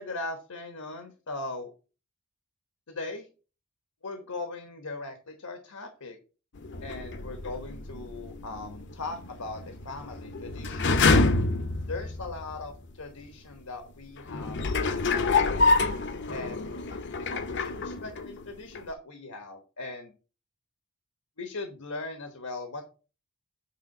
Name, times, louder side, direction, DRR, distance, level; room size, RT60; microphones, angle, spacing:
voice 1, 0.0-1.7 2.9-3.3 4.0-6.2 6.8-11.3 11.9-15.7 16.3-20.1 21.4-22.8, left 3 dB, 85° left, 7 dB, 1.2 m, -39 dB
sound 1, 6.6-12.7 13.3-13.4 14.2-18.5 18.7-18.8, left 3 dB, 55° left, 0.7 m, -27 dB
8.2 x 3.5 x 5.9 m, 0.35 s
head